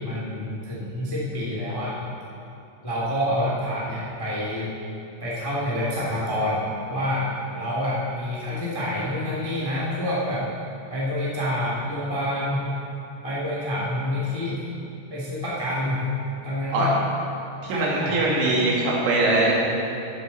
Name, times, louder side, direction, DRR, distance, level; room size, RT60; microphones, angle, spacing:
voice 1, 0.0-2.0 2.8-4.7 5.2-7.3 7.5-10.4 10.9-12.6 13.2-14.6 15.1-16.1 16.4-16.9 17.7-18.6, left 1 dB, 30° left, -7 dB, 0.4 m, -27 dB
voice 2, 17.6-19.5, right 2 dB, 80° right, -4 dB, 4.6 m, -22 dB
12.5 x 11.5 x 4.2 m, 2.7 s
omnidirectional pair, 5.4 m